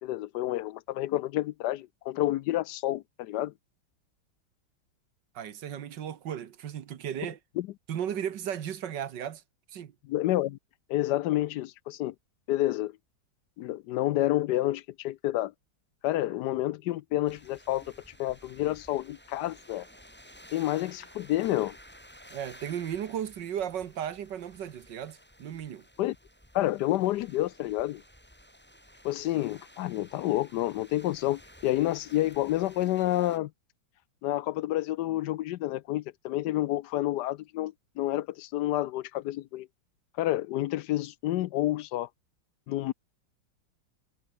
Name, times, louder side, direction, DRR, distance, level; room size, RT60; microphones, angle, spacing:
voice 1, 0.0-3.5 7.6-7.7 10.1-10.6 10.9-12.1 12.5-12.9 13.6-15.5 16.0-17.8 18.2-19.9 20.5-21.8 26.0-26.2 26.5-28.0 29.0-33.5 34.2-39.7 40.2-42.1 42.7-42.9, left 15 dB, 75° left, 1.0 m, -29 dB
voice 2, 5.4-7.4 7.9-9.4 9.7-9.9 22.3-25.9, right 9 dB, 65° right, 1.8 m, -35 dB
sound 1, 17.2-33.4, equal, 5° left, 7.9 m, -54 dB
omnidirectional pair, 2.1 m